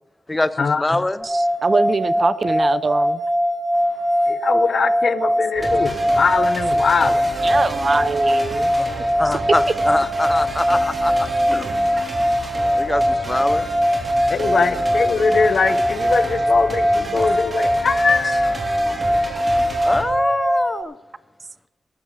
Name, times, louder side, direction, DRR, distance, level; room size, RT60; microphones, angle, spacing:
voice 1, 0.3-1.2 8.8-8.9 9.2-11.9 12.8-13.7 19.8-20.9, left 2 dB, 25° left, 0.7 m, -24 dB
sound 1, 1.2-20.8, equal, 15° right, 1.0 m, -21 dB
voice 2, 1.2-3.2 7.4-8.7 9.3-9.4, right 4 dB, 55° right, 0.5 m, -23 dB
voice 3, 4.3-7.3 14.3-18.9, left 5 dB, 75° left, 0.7 m, -22 dB
sound 2, 5.5-20.0, right 1 dB, 35° right, 3.6 m, -32 dB
13.5 x 12.5 x 4.8 m
wide cardioid pair, 80°, 0 cm